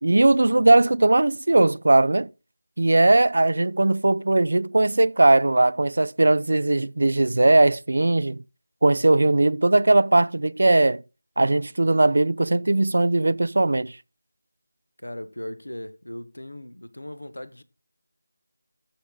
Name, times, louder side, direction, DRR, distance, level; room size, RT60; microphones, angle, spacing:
voice 1, 0.0-2.3 2.8-8.4 8.8-11.0 11.4-14.0, right 2 dB, 60° right, 0.4 m, -19 dB
voice 2, 15.0-17.6, left 1 dB, 75° left, 1.0 m, -38 dB
13.5 x 4.9 x 3.8 m
figure-of-eight pair, 165°, 0 cm